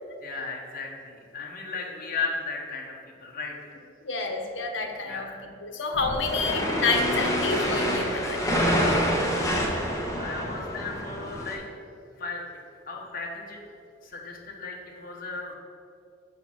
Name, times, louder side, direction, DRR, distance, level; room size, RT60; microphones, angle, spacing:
voice 1, 0.2-2.9 3.2-3.7 5.0-5.4 10.1-11.6 12.2-12.4 12.9-13.6 14.0-15.6, left 4 dB, 50° left, -1 dB, 1.3 m, -35 dB
voice 2, 4.0-8.7 9.3-9.4, left 4 dB, 75° left, 3 dB, 1.1 m, -29 dB
sound 1, 5.9-11.5, equal, 15° left, 1.2 m, -27 dB
7.0 x 5.6 x 6.0 m, 2.5 s
head